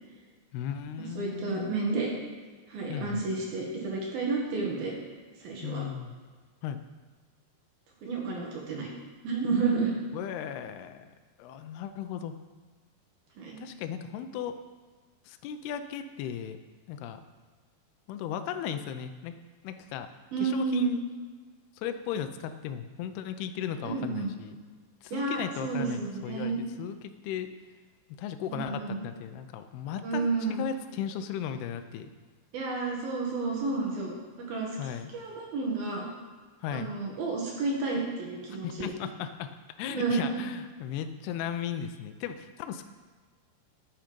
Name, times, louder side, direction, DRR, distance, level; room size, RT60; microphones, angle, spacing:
voice 1, 0.5-1.8 2.9-3.2 5.6-6.1 6.6-6.8 10.1-11.0 11.4-12.4 13.6-14.6 15.3-16.6 16.9-17.2 18.1-19.4 19.6-20.1 20.4-21.0 21.8-24.6 25.0-26.5 26.8-27.5 28.2-32.1 34.8-35.1 36.6-36.9 38.6-39.5 39.8-42.8, left 9 dB, 90° left, 8 dB, 2.3 m, -36 dB
voice 2, 1.1-2.1 2.7-4.9 5.4-5.8 8.0-8.9 9.2-9.9 13.4-13.6 20.3-20.9 23.8-24.3 25.1-26.6 28.5-29.0 30.0-30.6 32.5-36.1 36.7-38.9 39.8-40.4, right 4 dB, 60° right, -2 dB, 3.1 m, -31 dB
13.0 x 7.3 x 5.2 m, 1.5 s
omnidirectional pair, 5.4 m